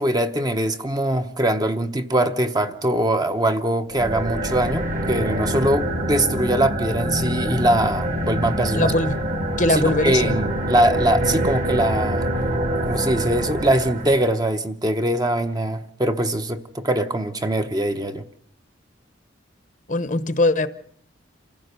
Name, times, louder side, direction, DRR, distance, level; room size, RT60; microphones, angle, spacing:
voice 1, 0.0-8.9 9.7-12.3 12.9-18.2, right 1 dB, 20° right, 0.8 m, -22 dB
sound 1, 3.9-14.4, right 1 dB, 45° right, 1.7 m, -25 dB
voice 2, 8.7-9.2 9.6-10.4 19.9-20.7, left 2 dB, 40° left, 0.9 m, -21 dB
28.0 x 15.5 x 6.7 m
head